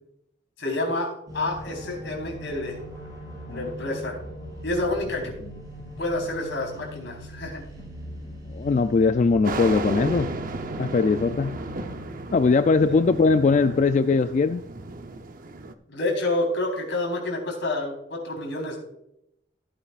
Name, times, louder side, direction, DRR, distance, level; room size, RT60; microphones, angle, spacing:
voice 1, 0.6-2.8 3.5-4.2 4.6-5.3 6.0-7.6 15.9-18.8, left 2 dB, 70° left, 0 dB, 4.0 m, -28 dB
sound 1, 1.3-14.5, equal, 20° right, 4.5 m, -41 dB
voice 2, 8.5-10.3 10.8-11.6 12.3-14.6, left 4 dB, 40° left, 11 dB, 0.3 m, -21 dB
sound 2, 9.4-15.7, right 2 dB, 45° right, 0.7 m, -34 dB
15.5 x 8.8 x 2.4 m, 0.80 s
head